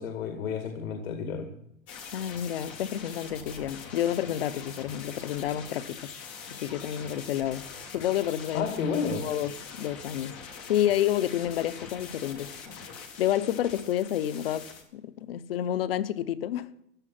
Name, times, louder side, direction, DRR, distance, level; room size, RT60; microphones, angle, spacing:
voice 1, 0.0-1.6 8.5-9.3, left 5 dB, 80° left, 2.2 m, -31 dB
sound 1, 1.9-14.8, left 6 dB, 10° left, 0.4 m, -43 dB
voice 2, 2.1-6.1 6.6-7.7 7.9-8.7 8.9-10.4 10.7-12.5 13.2-14.7 14.9-16.7, left 11 dB, 45° left, 0.8 m, -29 dB
16.0 x 10.5 x 5.9 m
supercardioid pair, 180°, 40 cm